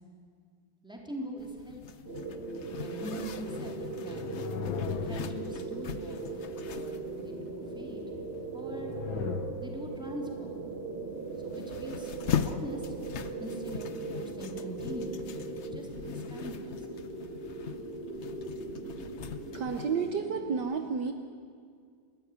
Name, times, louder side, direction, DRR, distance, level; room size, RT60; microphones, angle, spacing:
voice 1, 0.8-2.0 2.3-2.4 2.8-4.2 5.0-8.0 8.5-8.9 9.6-10.6 11.4-12.1 12.4-12.9 13.4-15.4 15.7-17.0, equal, ahead, -1 dB, 3.7 m, -43 dB
Zipper (clothing), 1.4-19.9, left 8 dB, 55° left, 0.7 m, -41 dB
sound 1, 2.1-20.6, right 3 dB, 30° right, 2.5 m, -39 dB
sound 2, 3.3-6.3 8.4-10.2, left 8 dB, 90° left, 1.6 m, -39 dB
voice 2, 19.3-21.1, right 6 dB, 65° right, 6 dB, 1.6 m, -31 dB
30.0 x 13.5 x 9.6 m, 2.2 s
omnidirectional pair, 2.1 m